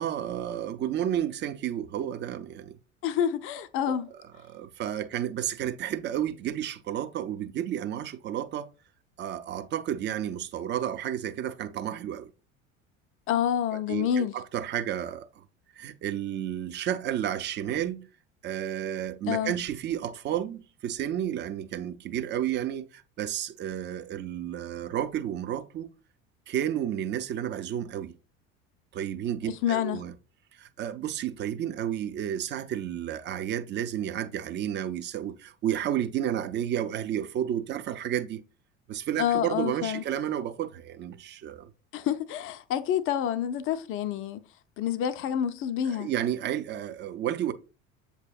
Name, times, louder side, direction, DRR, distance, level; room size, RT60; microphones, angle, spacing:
voice 1, 0.0-2.8 3.9-4.0 4.5-8.7 9.2-12.3 13.9-15.4 15.7-18.1 18.4-25.9 26.5-28.1 28.9-30.1 30.5-38.4 38.9-41.7 45.9-47.5, right 10 dB, 30° right, 0.5 m, -31 dB
voice 2, 3.0-4.1 13.3-14.3 19.3-19.6 29.4-30.0 39.2-40.0 41.9-44.4 44.8-46.1, left 9 dB, 35° left, 0.5 m, -28 dB
7.9 x 2.8 x 2.2 m
figure-of-eight pair, 65°, 40 cm